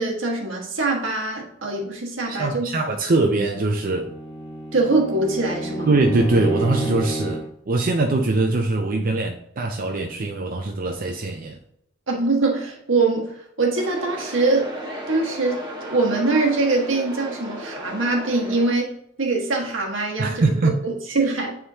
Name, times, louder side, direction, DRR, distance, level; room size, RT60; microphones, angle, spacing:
voice 1, 0.0-2.7 4.7-5.9 12.1-14.7 15.1-15.6 15.9-21.6, right 3 dB, 80° right, 0 dB, 1.5 m, -23 dB
voice 2, 2.3-4.1 5.9-11.6 20.2-20.8, right 2 dB, 45° right, 3 dB, 0.5 m, -22 dB
Bowed string instrument, 3.7-7.6, right 1 dB, 25° left, 1.2 m, -30 dB
sound 1, 13.8-18.7, equal, 20° right, 1.4 m, -35 dB
9.7 x 3.7 x 2.8 m, 0.75 s
head